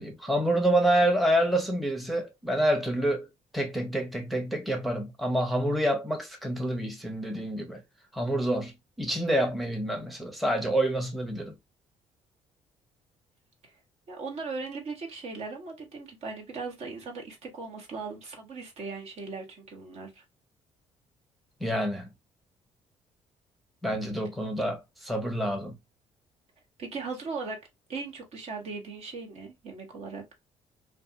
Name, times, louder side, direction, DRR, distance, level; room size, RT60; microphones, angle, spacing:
voice 1, 0.0-3.3 3.5-7.8 8.1-8.7 9.0-11.5 21.6-22.1 23.8-25.8, right 1 dB, ahead, 0.7 m, -27 dB
voice 2, 14.1-20.2 26.8-27.6 27.9-30.2, right 4 dB, 60° right, 1.0 m, -38 dB
2.5 x 2.3 x 2.6 m
cardioid pair, 85°, 12 cm